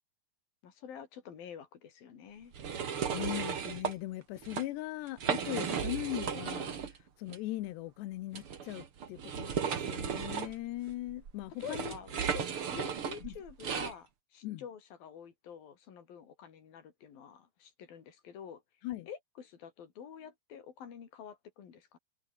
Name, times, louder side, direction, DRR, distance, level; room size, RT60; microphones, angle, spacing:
voice 1, 0.6-2.5 11.6-12.5 12.7-18.6 19.1-22.0, left 8 dB, 60° left, 4.8 m, -48 dB
sound 1, 2.5-3.9 4.4-4.6 5.1-7.0 7.3-7.4 8.3-13.9, right 7 dB, 40° right, 2.2 m, -35 dB
voice 2, 3.1-11.9 12.3-12.4 13.2-13.4 14.4-14.6 18.8-19.1, left 16 dB, 85° left, 3.2 m, -39 dB
omnidirectional pair, 4.8 m